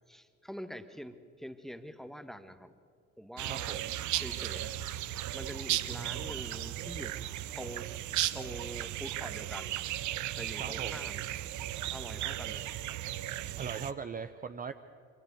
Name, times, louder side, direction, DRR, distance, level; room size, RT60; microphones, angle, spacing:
voice 1, 0.1-2.7 3.2-3.9 4.2-4.8 5.3-7.2 7.6-7.9 8.3-9.7 10.0-11.2 11.9-12.7, equal, ahead, 11 dB, 1.3 m, -45 dB
voice 2, 3.4-3.9 5.9-6.4 10.6-11.0 13.5-14.7, right 6 dB, 20° right, 10 dB, 0.7 m, -40 dB
sound 1, 3.4-13.9, right 14 dB, 50° right, 0.9 m, -36 dB
25.5 x 16.0 x 6.8 m, 2.3 s
figure-of-eight pair, 55°, 39 cm